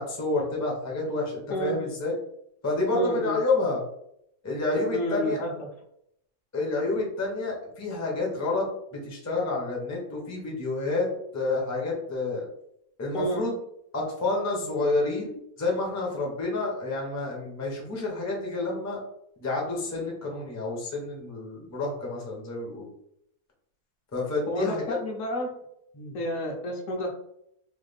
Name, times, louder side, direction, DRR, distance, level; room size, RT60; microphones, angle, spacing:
voice 1, 0.0-2.1 2.6-3.8 4.4-5.4 6.5-11.1 11.3-12.5 13.0-13.5 13.9-19.0 19.4-22.9 24.1-25.0 25.9-26.2, left 2 dB, 25° left, -2 dB, 0.4 m, -29 dB
voice 2, 2.9-3.4 4.9-5.5 13.1-13.4 24.5-25.5 26.1-27.1, equal, 65° left, 1 dB, 0.9 m, -30 dB
3.2 x 2.3 x 3.3 m, 0.74 s
omnidirectional pair, 1.7 m